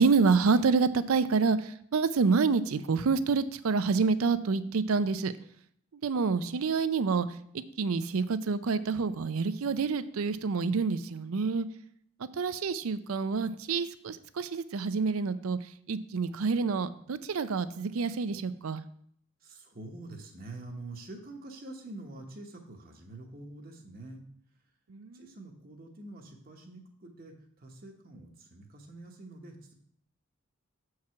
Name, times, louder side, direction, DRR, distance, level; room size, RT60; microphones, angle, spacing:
voice 1, 0.0-5.3 5.9-7.3 7.5-11.7 12.3-15.6 15.9-18.8 24.9-25.2, right 4 dB, 80° right, 13 dB, 0.5 m, -27 dB
voice 2, 19.4-24.2 25.1-29.7, right 2 dB, 40° right, 1 dB, 1.0 m, -46 dB
7.3 x 4.7 x 5.7 m, 0.66 s
head